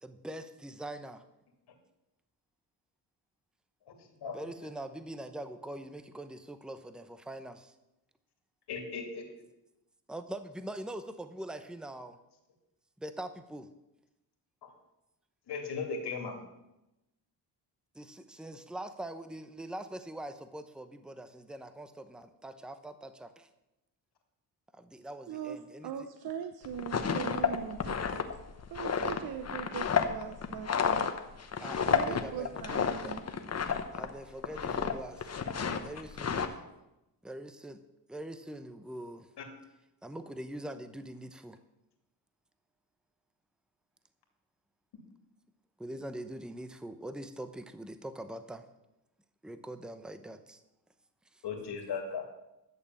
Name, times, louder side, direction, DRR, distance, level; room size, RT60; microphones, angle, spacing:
voice 1, 0.0-1.2 4.3-7.7 10.1-12.2 13.0-13.7 17.9-23.5 24.7-25.9 31.6-33.1 33.9-35.3 35.8-36.6 37.2-37.8 38.1-39.3 40.0-41.6 45.8-48.6 49.4-50.6 51.3-51.4, right 1 dB, ahead, 10 dB, 0.8 m, -43 dB
voice 2, 8.7-9.2 14.6-14.7 15.5-16.4 51.4-52.3, left 5 dB, 70° left, 3 dB, 2.7 m, -36 dB
voice 3, 25.3-28.2 28.7-31.1 31.9-33.3, right 8 dB, 60° right, 8 dB, 0.8 m, -40 dB
sound 1, 26.6-34.1 34.4-34.9 35.2-36.5, left 6 dB, 35° left, 1.1 m, -31 dB
12.0 x 6.8 x 7.4 m, 0.93 s
cardioid pair, 100°, 41 cm